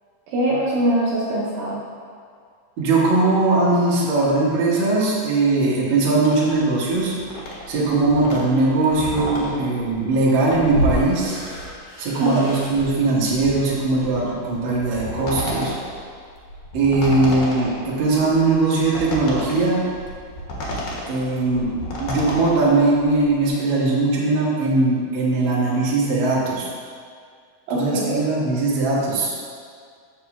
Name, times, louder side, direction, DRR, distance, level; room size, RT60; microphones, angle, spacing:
voice 1, 0.3-1.8 12.2-12.6 27.7-28.3, right 1 dB, 75° right, -4 dB, 2.2 m, -22 dB
voice 2, 2.8-7.1 7.7-11.4 12.0-15.7 16.7-19.9 21.1-21.7 22.0-26.7 27.7-29.3, right 2 dB, 55° right, -6 dB, 1.4 m, -20 dB
sound 1, 6.2-23.5, equal, 60° left, 2.3 m, -31 dB
13.5 x 5.3 x 3.1 m, 2.1 s
omnidirectional pair, 4.7 m